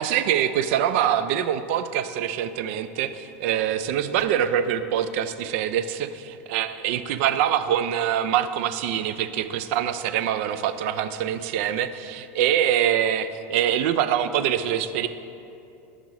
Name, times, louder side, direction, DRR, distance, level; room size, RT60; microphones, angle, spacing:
voice 1, 0.0-15.1, right 10 dB, 65° right, 12 dB, 0.4 m, -24 dB
5.5 x 4.8 x 5.0 m, 2.7 s
hypercardioid pair, 105°, 8 cm